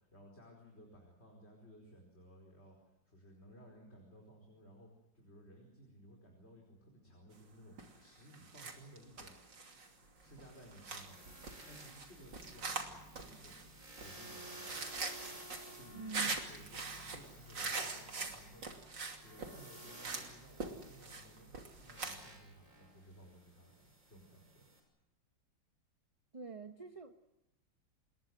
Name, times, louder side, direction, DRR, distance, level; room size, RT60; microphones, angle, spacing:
voice 1, 0.0-4.9 5.1-9.4 10.1-11.2 11.6-13.6 14.0-14.8 15.7-18.7 19.2-24.7, equal, 35° left, 0 dB, 5.0 m, -58 dB
sound 1, 7.8-8.0 8.3-22.3, right 4 dB, 80° right, 3.5 m, -43 dB
sound 2, 10.2-24.8, right 1 dB, 45° right, 6.6 m, -55 dB
voice 2, 15.9-16.4 26.3-27.1, right 5 dB, 25° right, 7 dB, 0.9 m, -45 dB
27.5 x 21.5 x 7.7 m, 0.89 s
omnidirectional pair, 1.9 m